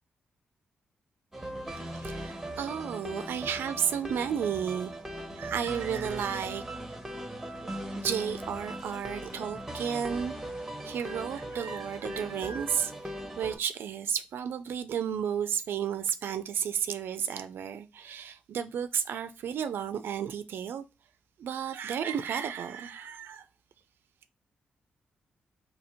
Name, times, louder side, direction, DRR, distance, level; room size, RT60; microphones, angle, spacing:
sound 1, 1.3-13.6, right 1 dB, 10° right, 0.8 m, -39 dB
voice 1, 1.8-6.6 8.0-10.3 10.8-20.9 21.4-23.4, right 8 dB, 75° right, 0.3 m, -33 dB
2.8 x 2.7 x 4.2 m
cardioid pair, 80°, 4 cm